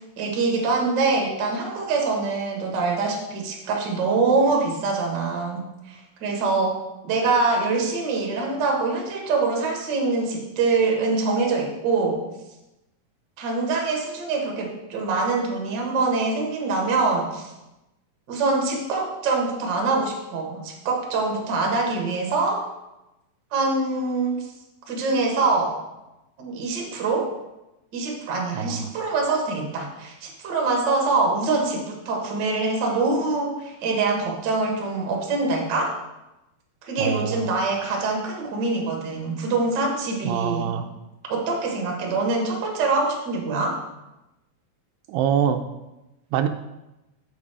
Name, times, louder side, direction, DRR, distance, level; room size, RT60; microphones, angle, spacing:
voice 1, 0.2-6.8 7.0-12.2 13.4-17.5 18.3-22.6 23.5-24.5 24.9-25.8 26.4-27.3 27.9-36.0 36.8-40.7 41.3-43.8, right 3 dB, 50° right, 0 dB, 1.4 m, -24 dB
voice 2, 28.5-28.9 37.0-37.5 40.2-40.9 45.1-45.6 46.3-46.5, right 8 dB, 85° right, 8 dB, 2.2 m, -24 dB
7.2 x 6.2 x 4.9 m, 0.96 s
omnidirectional pair, 4.0 m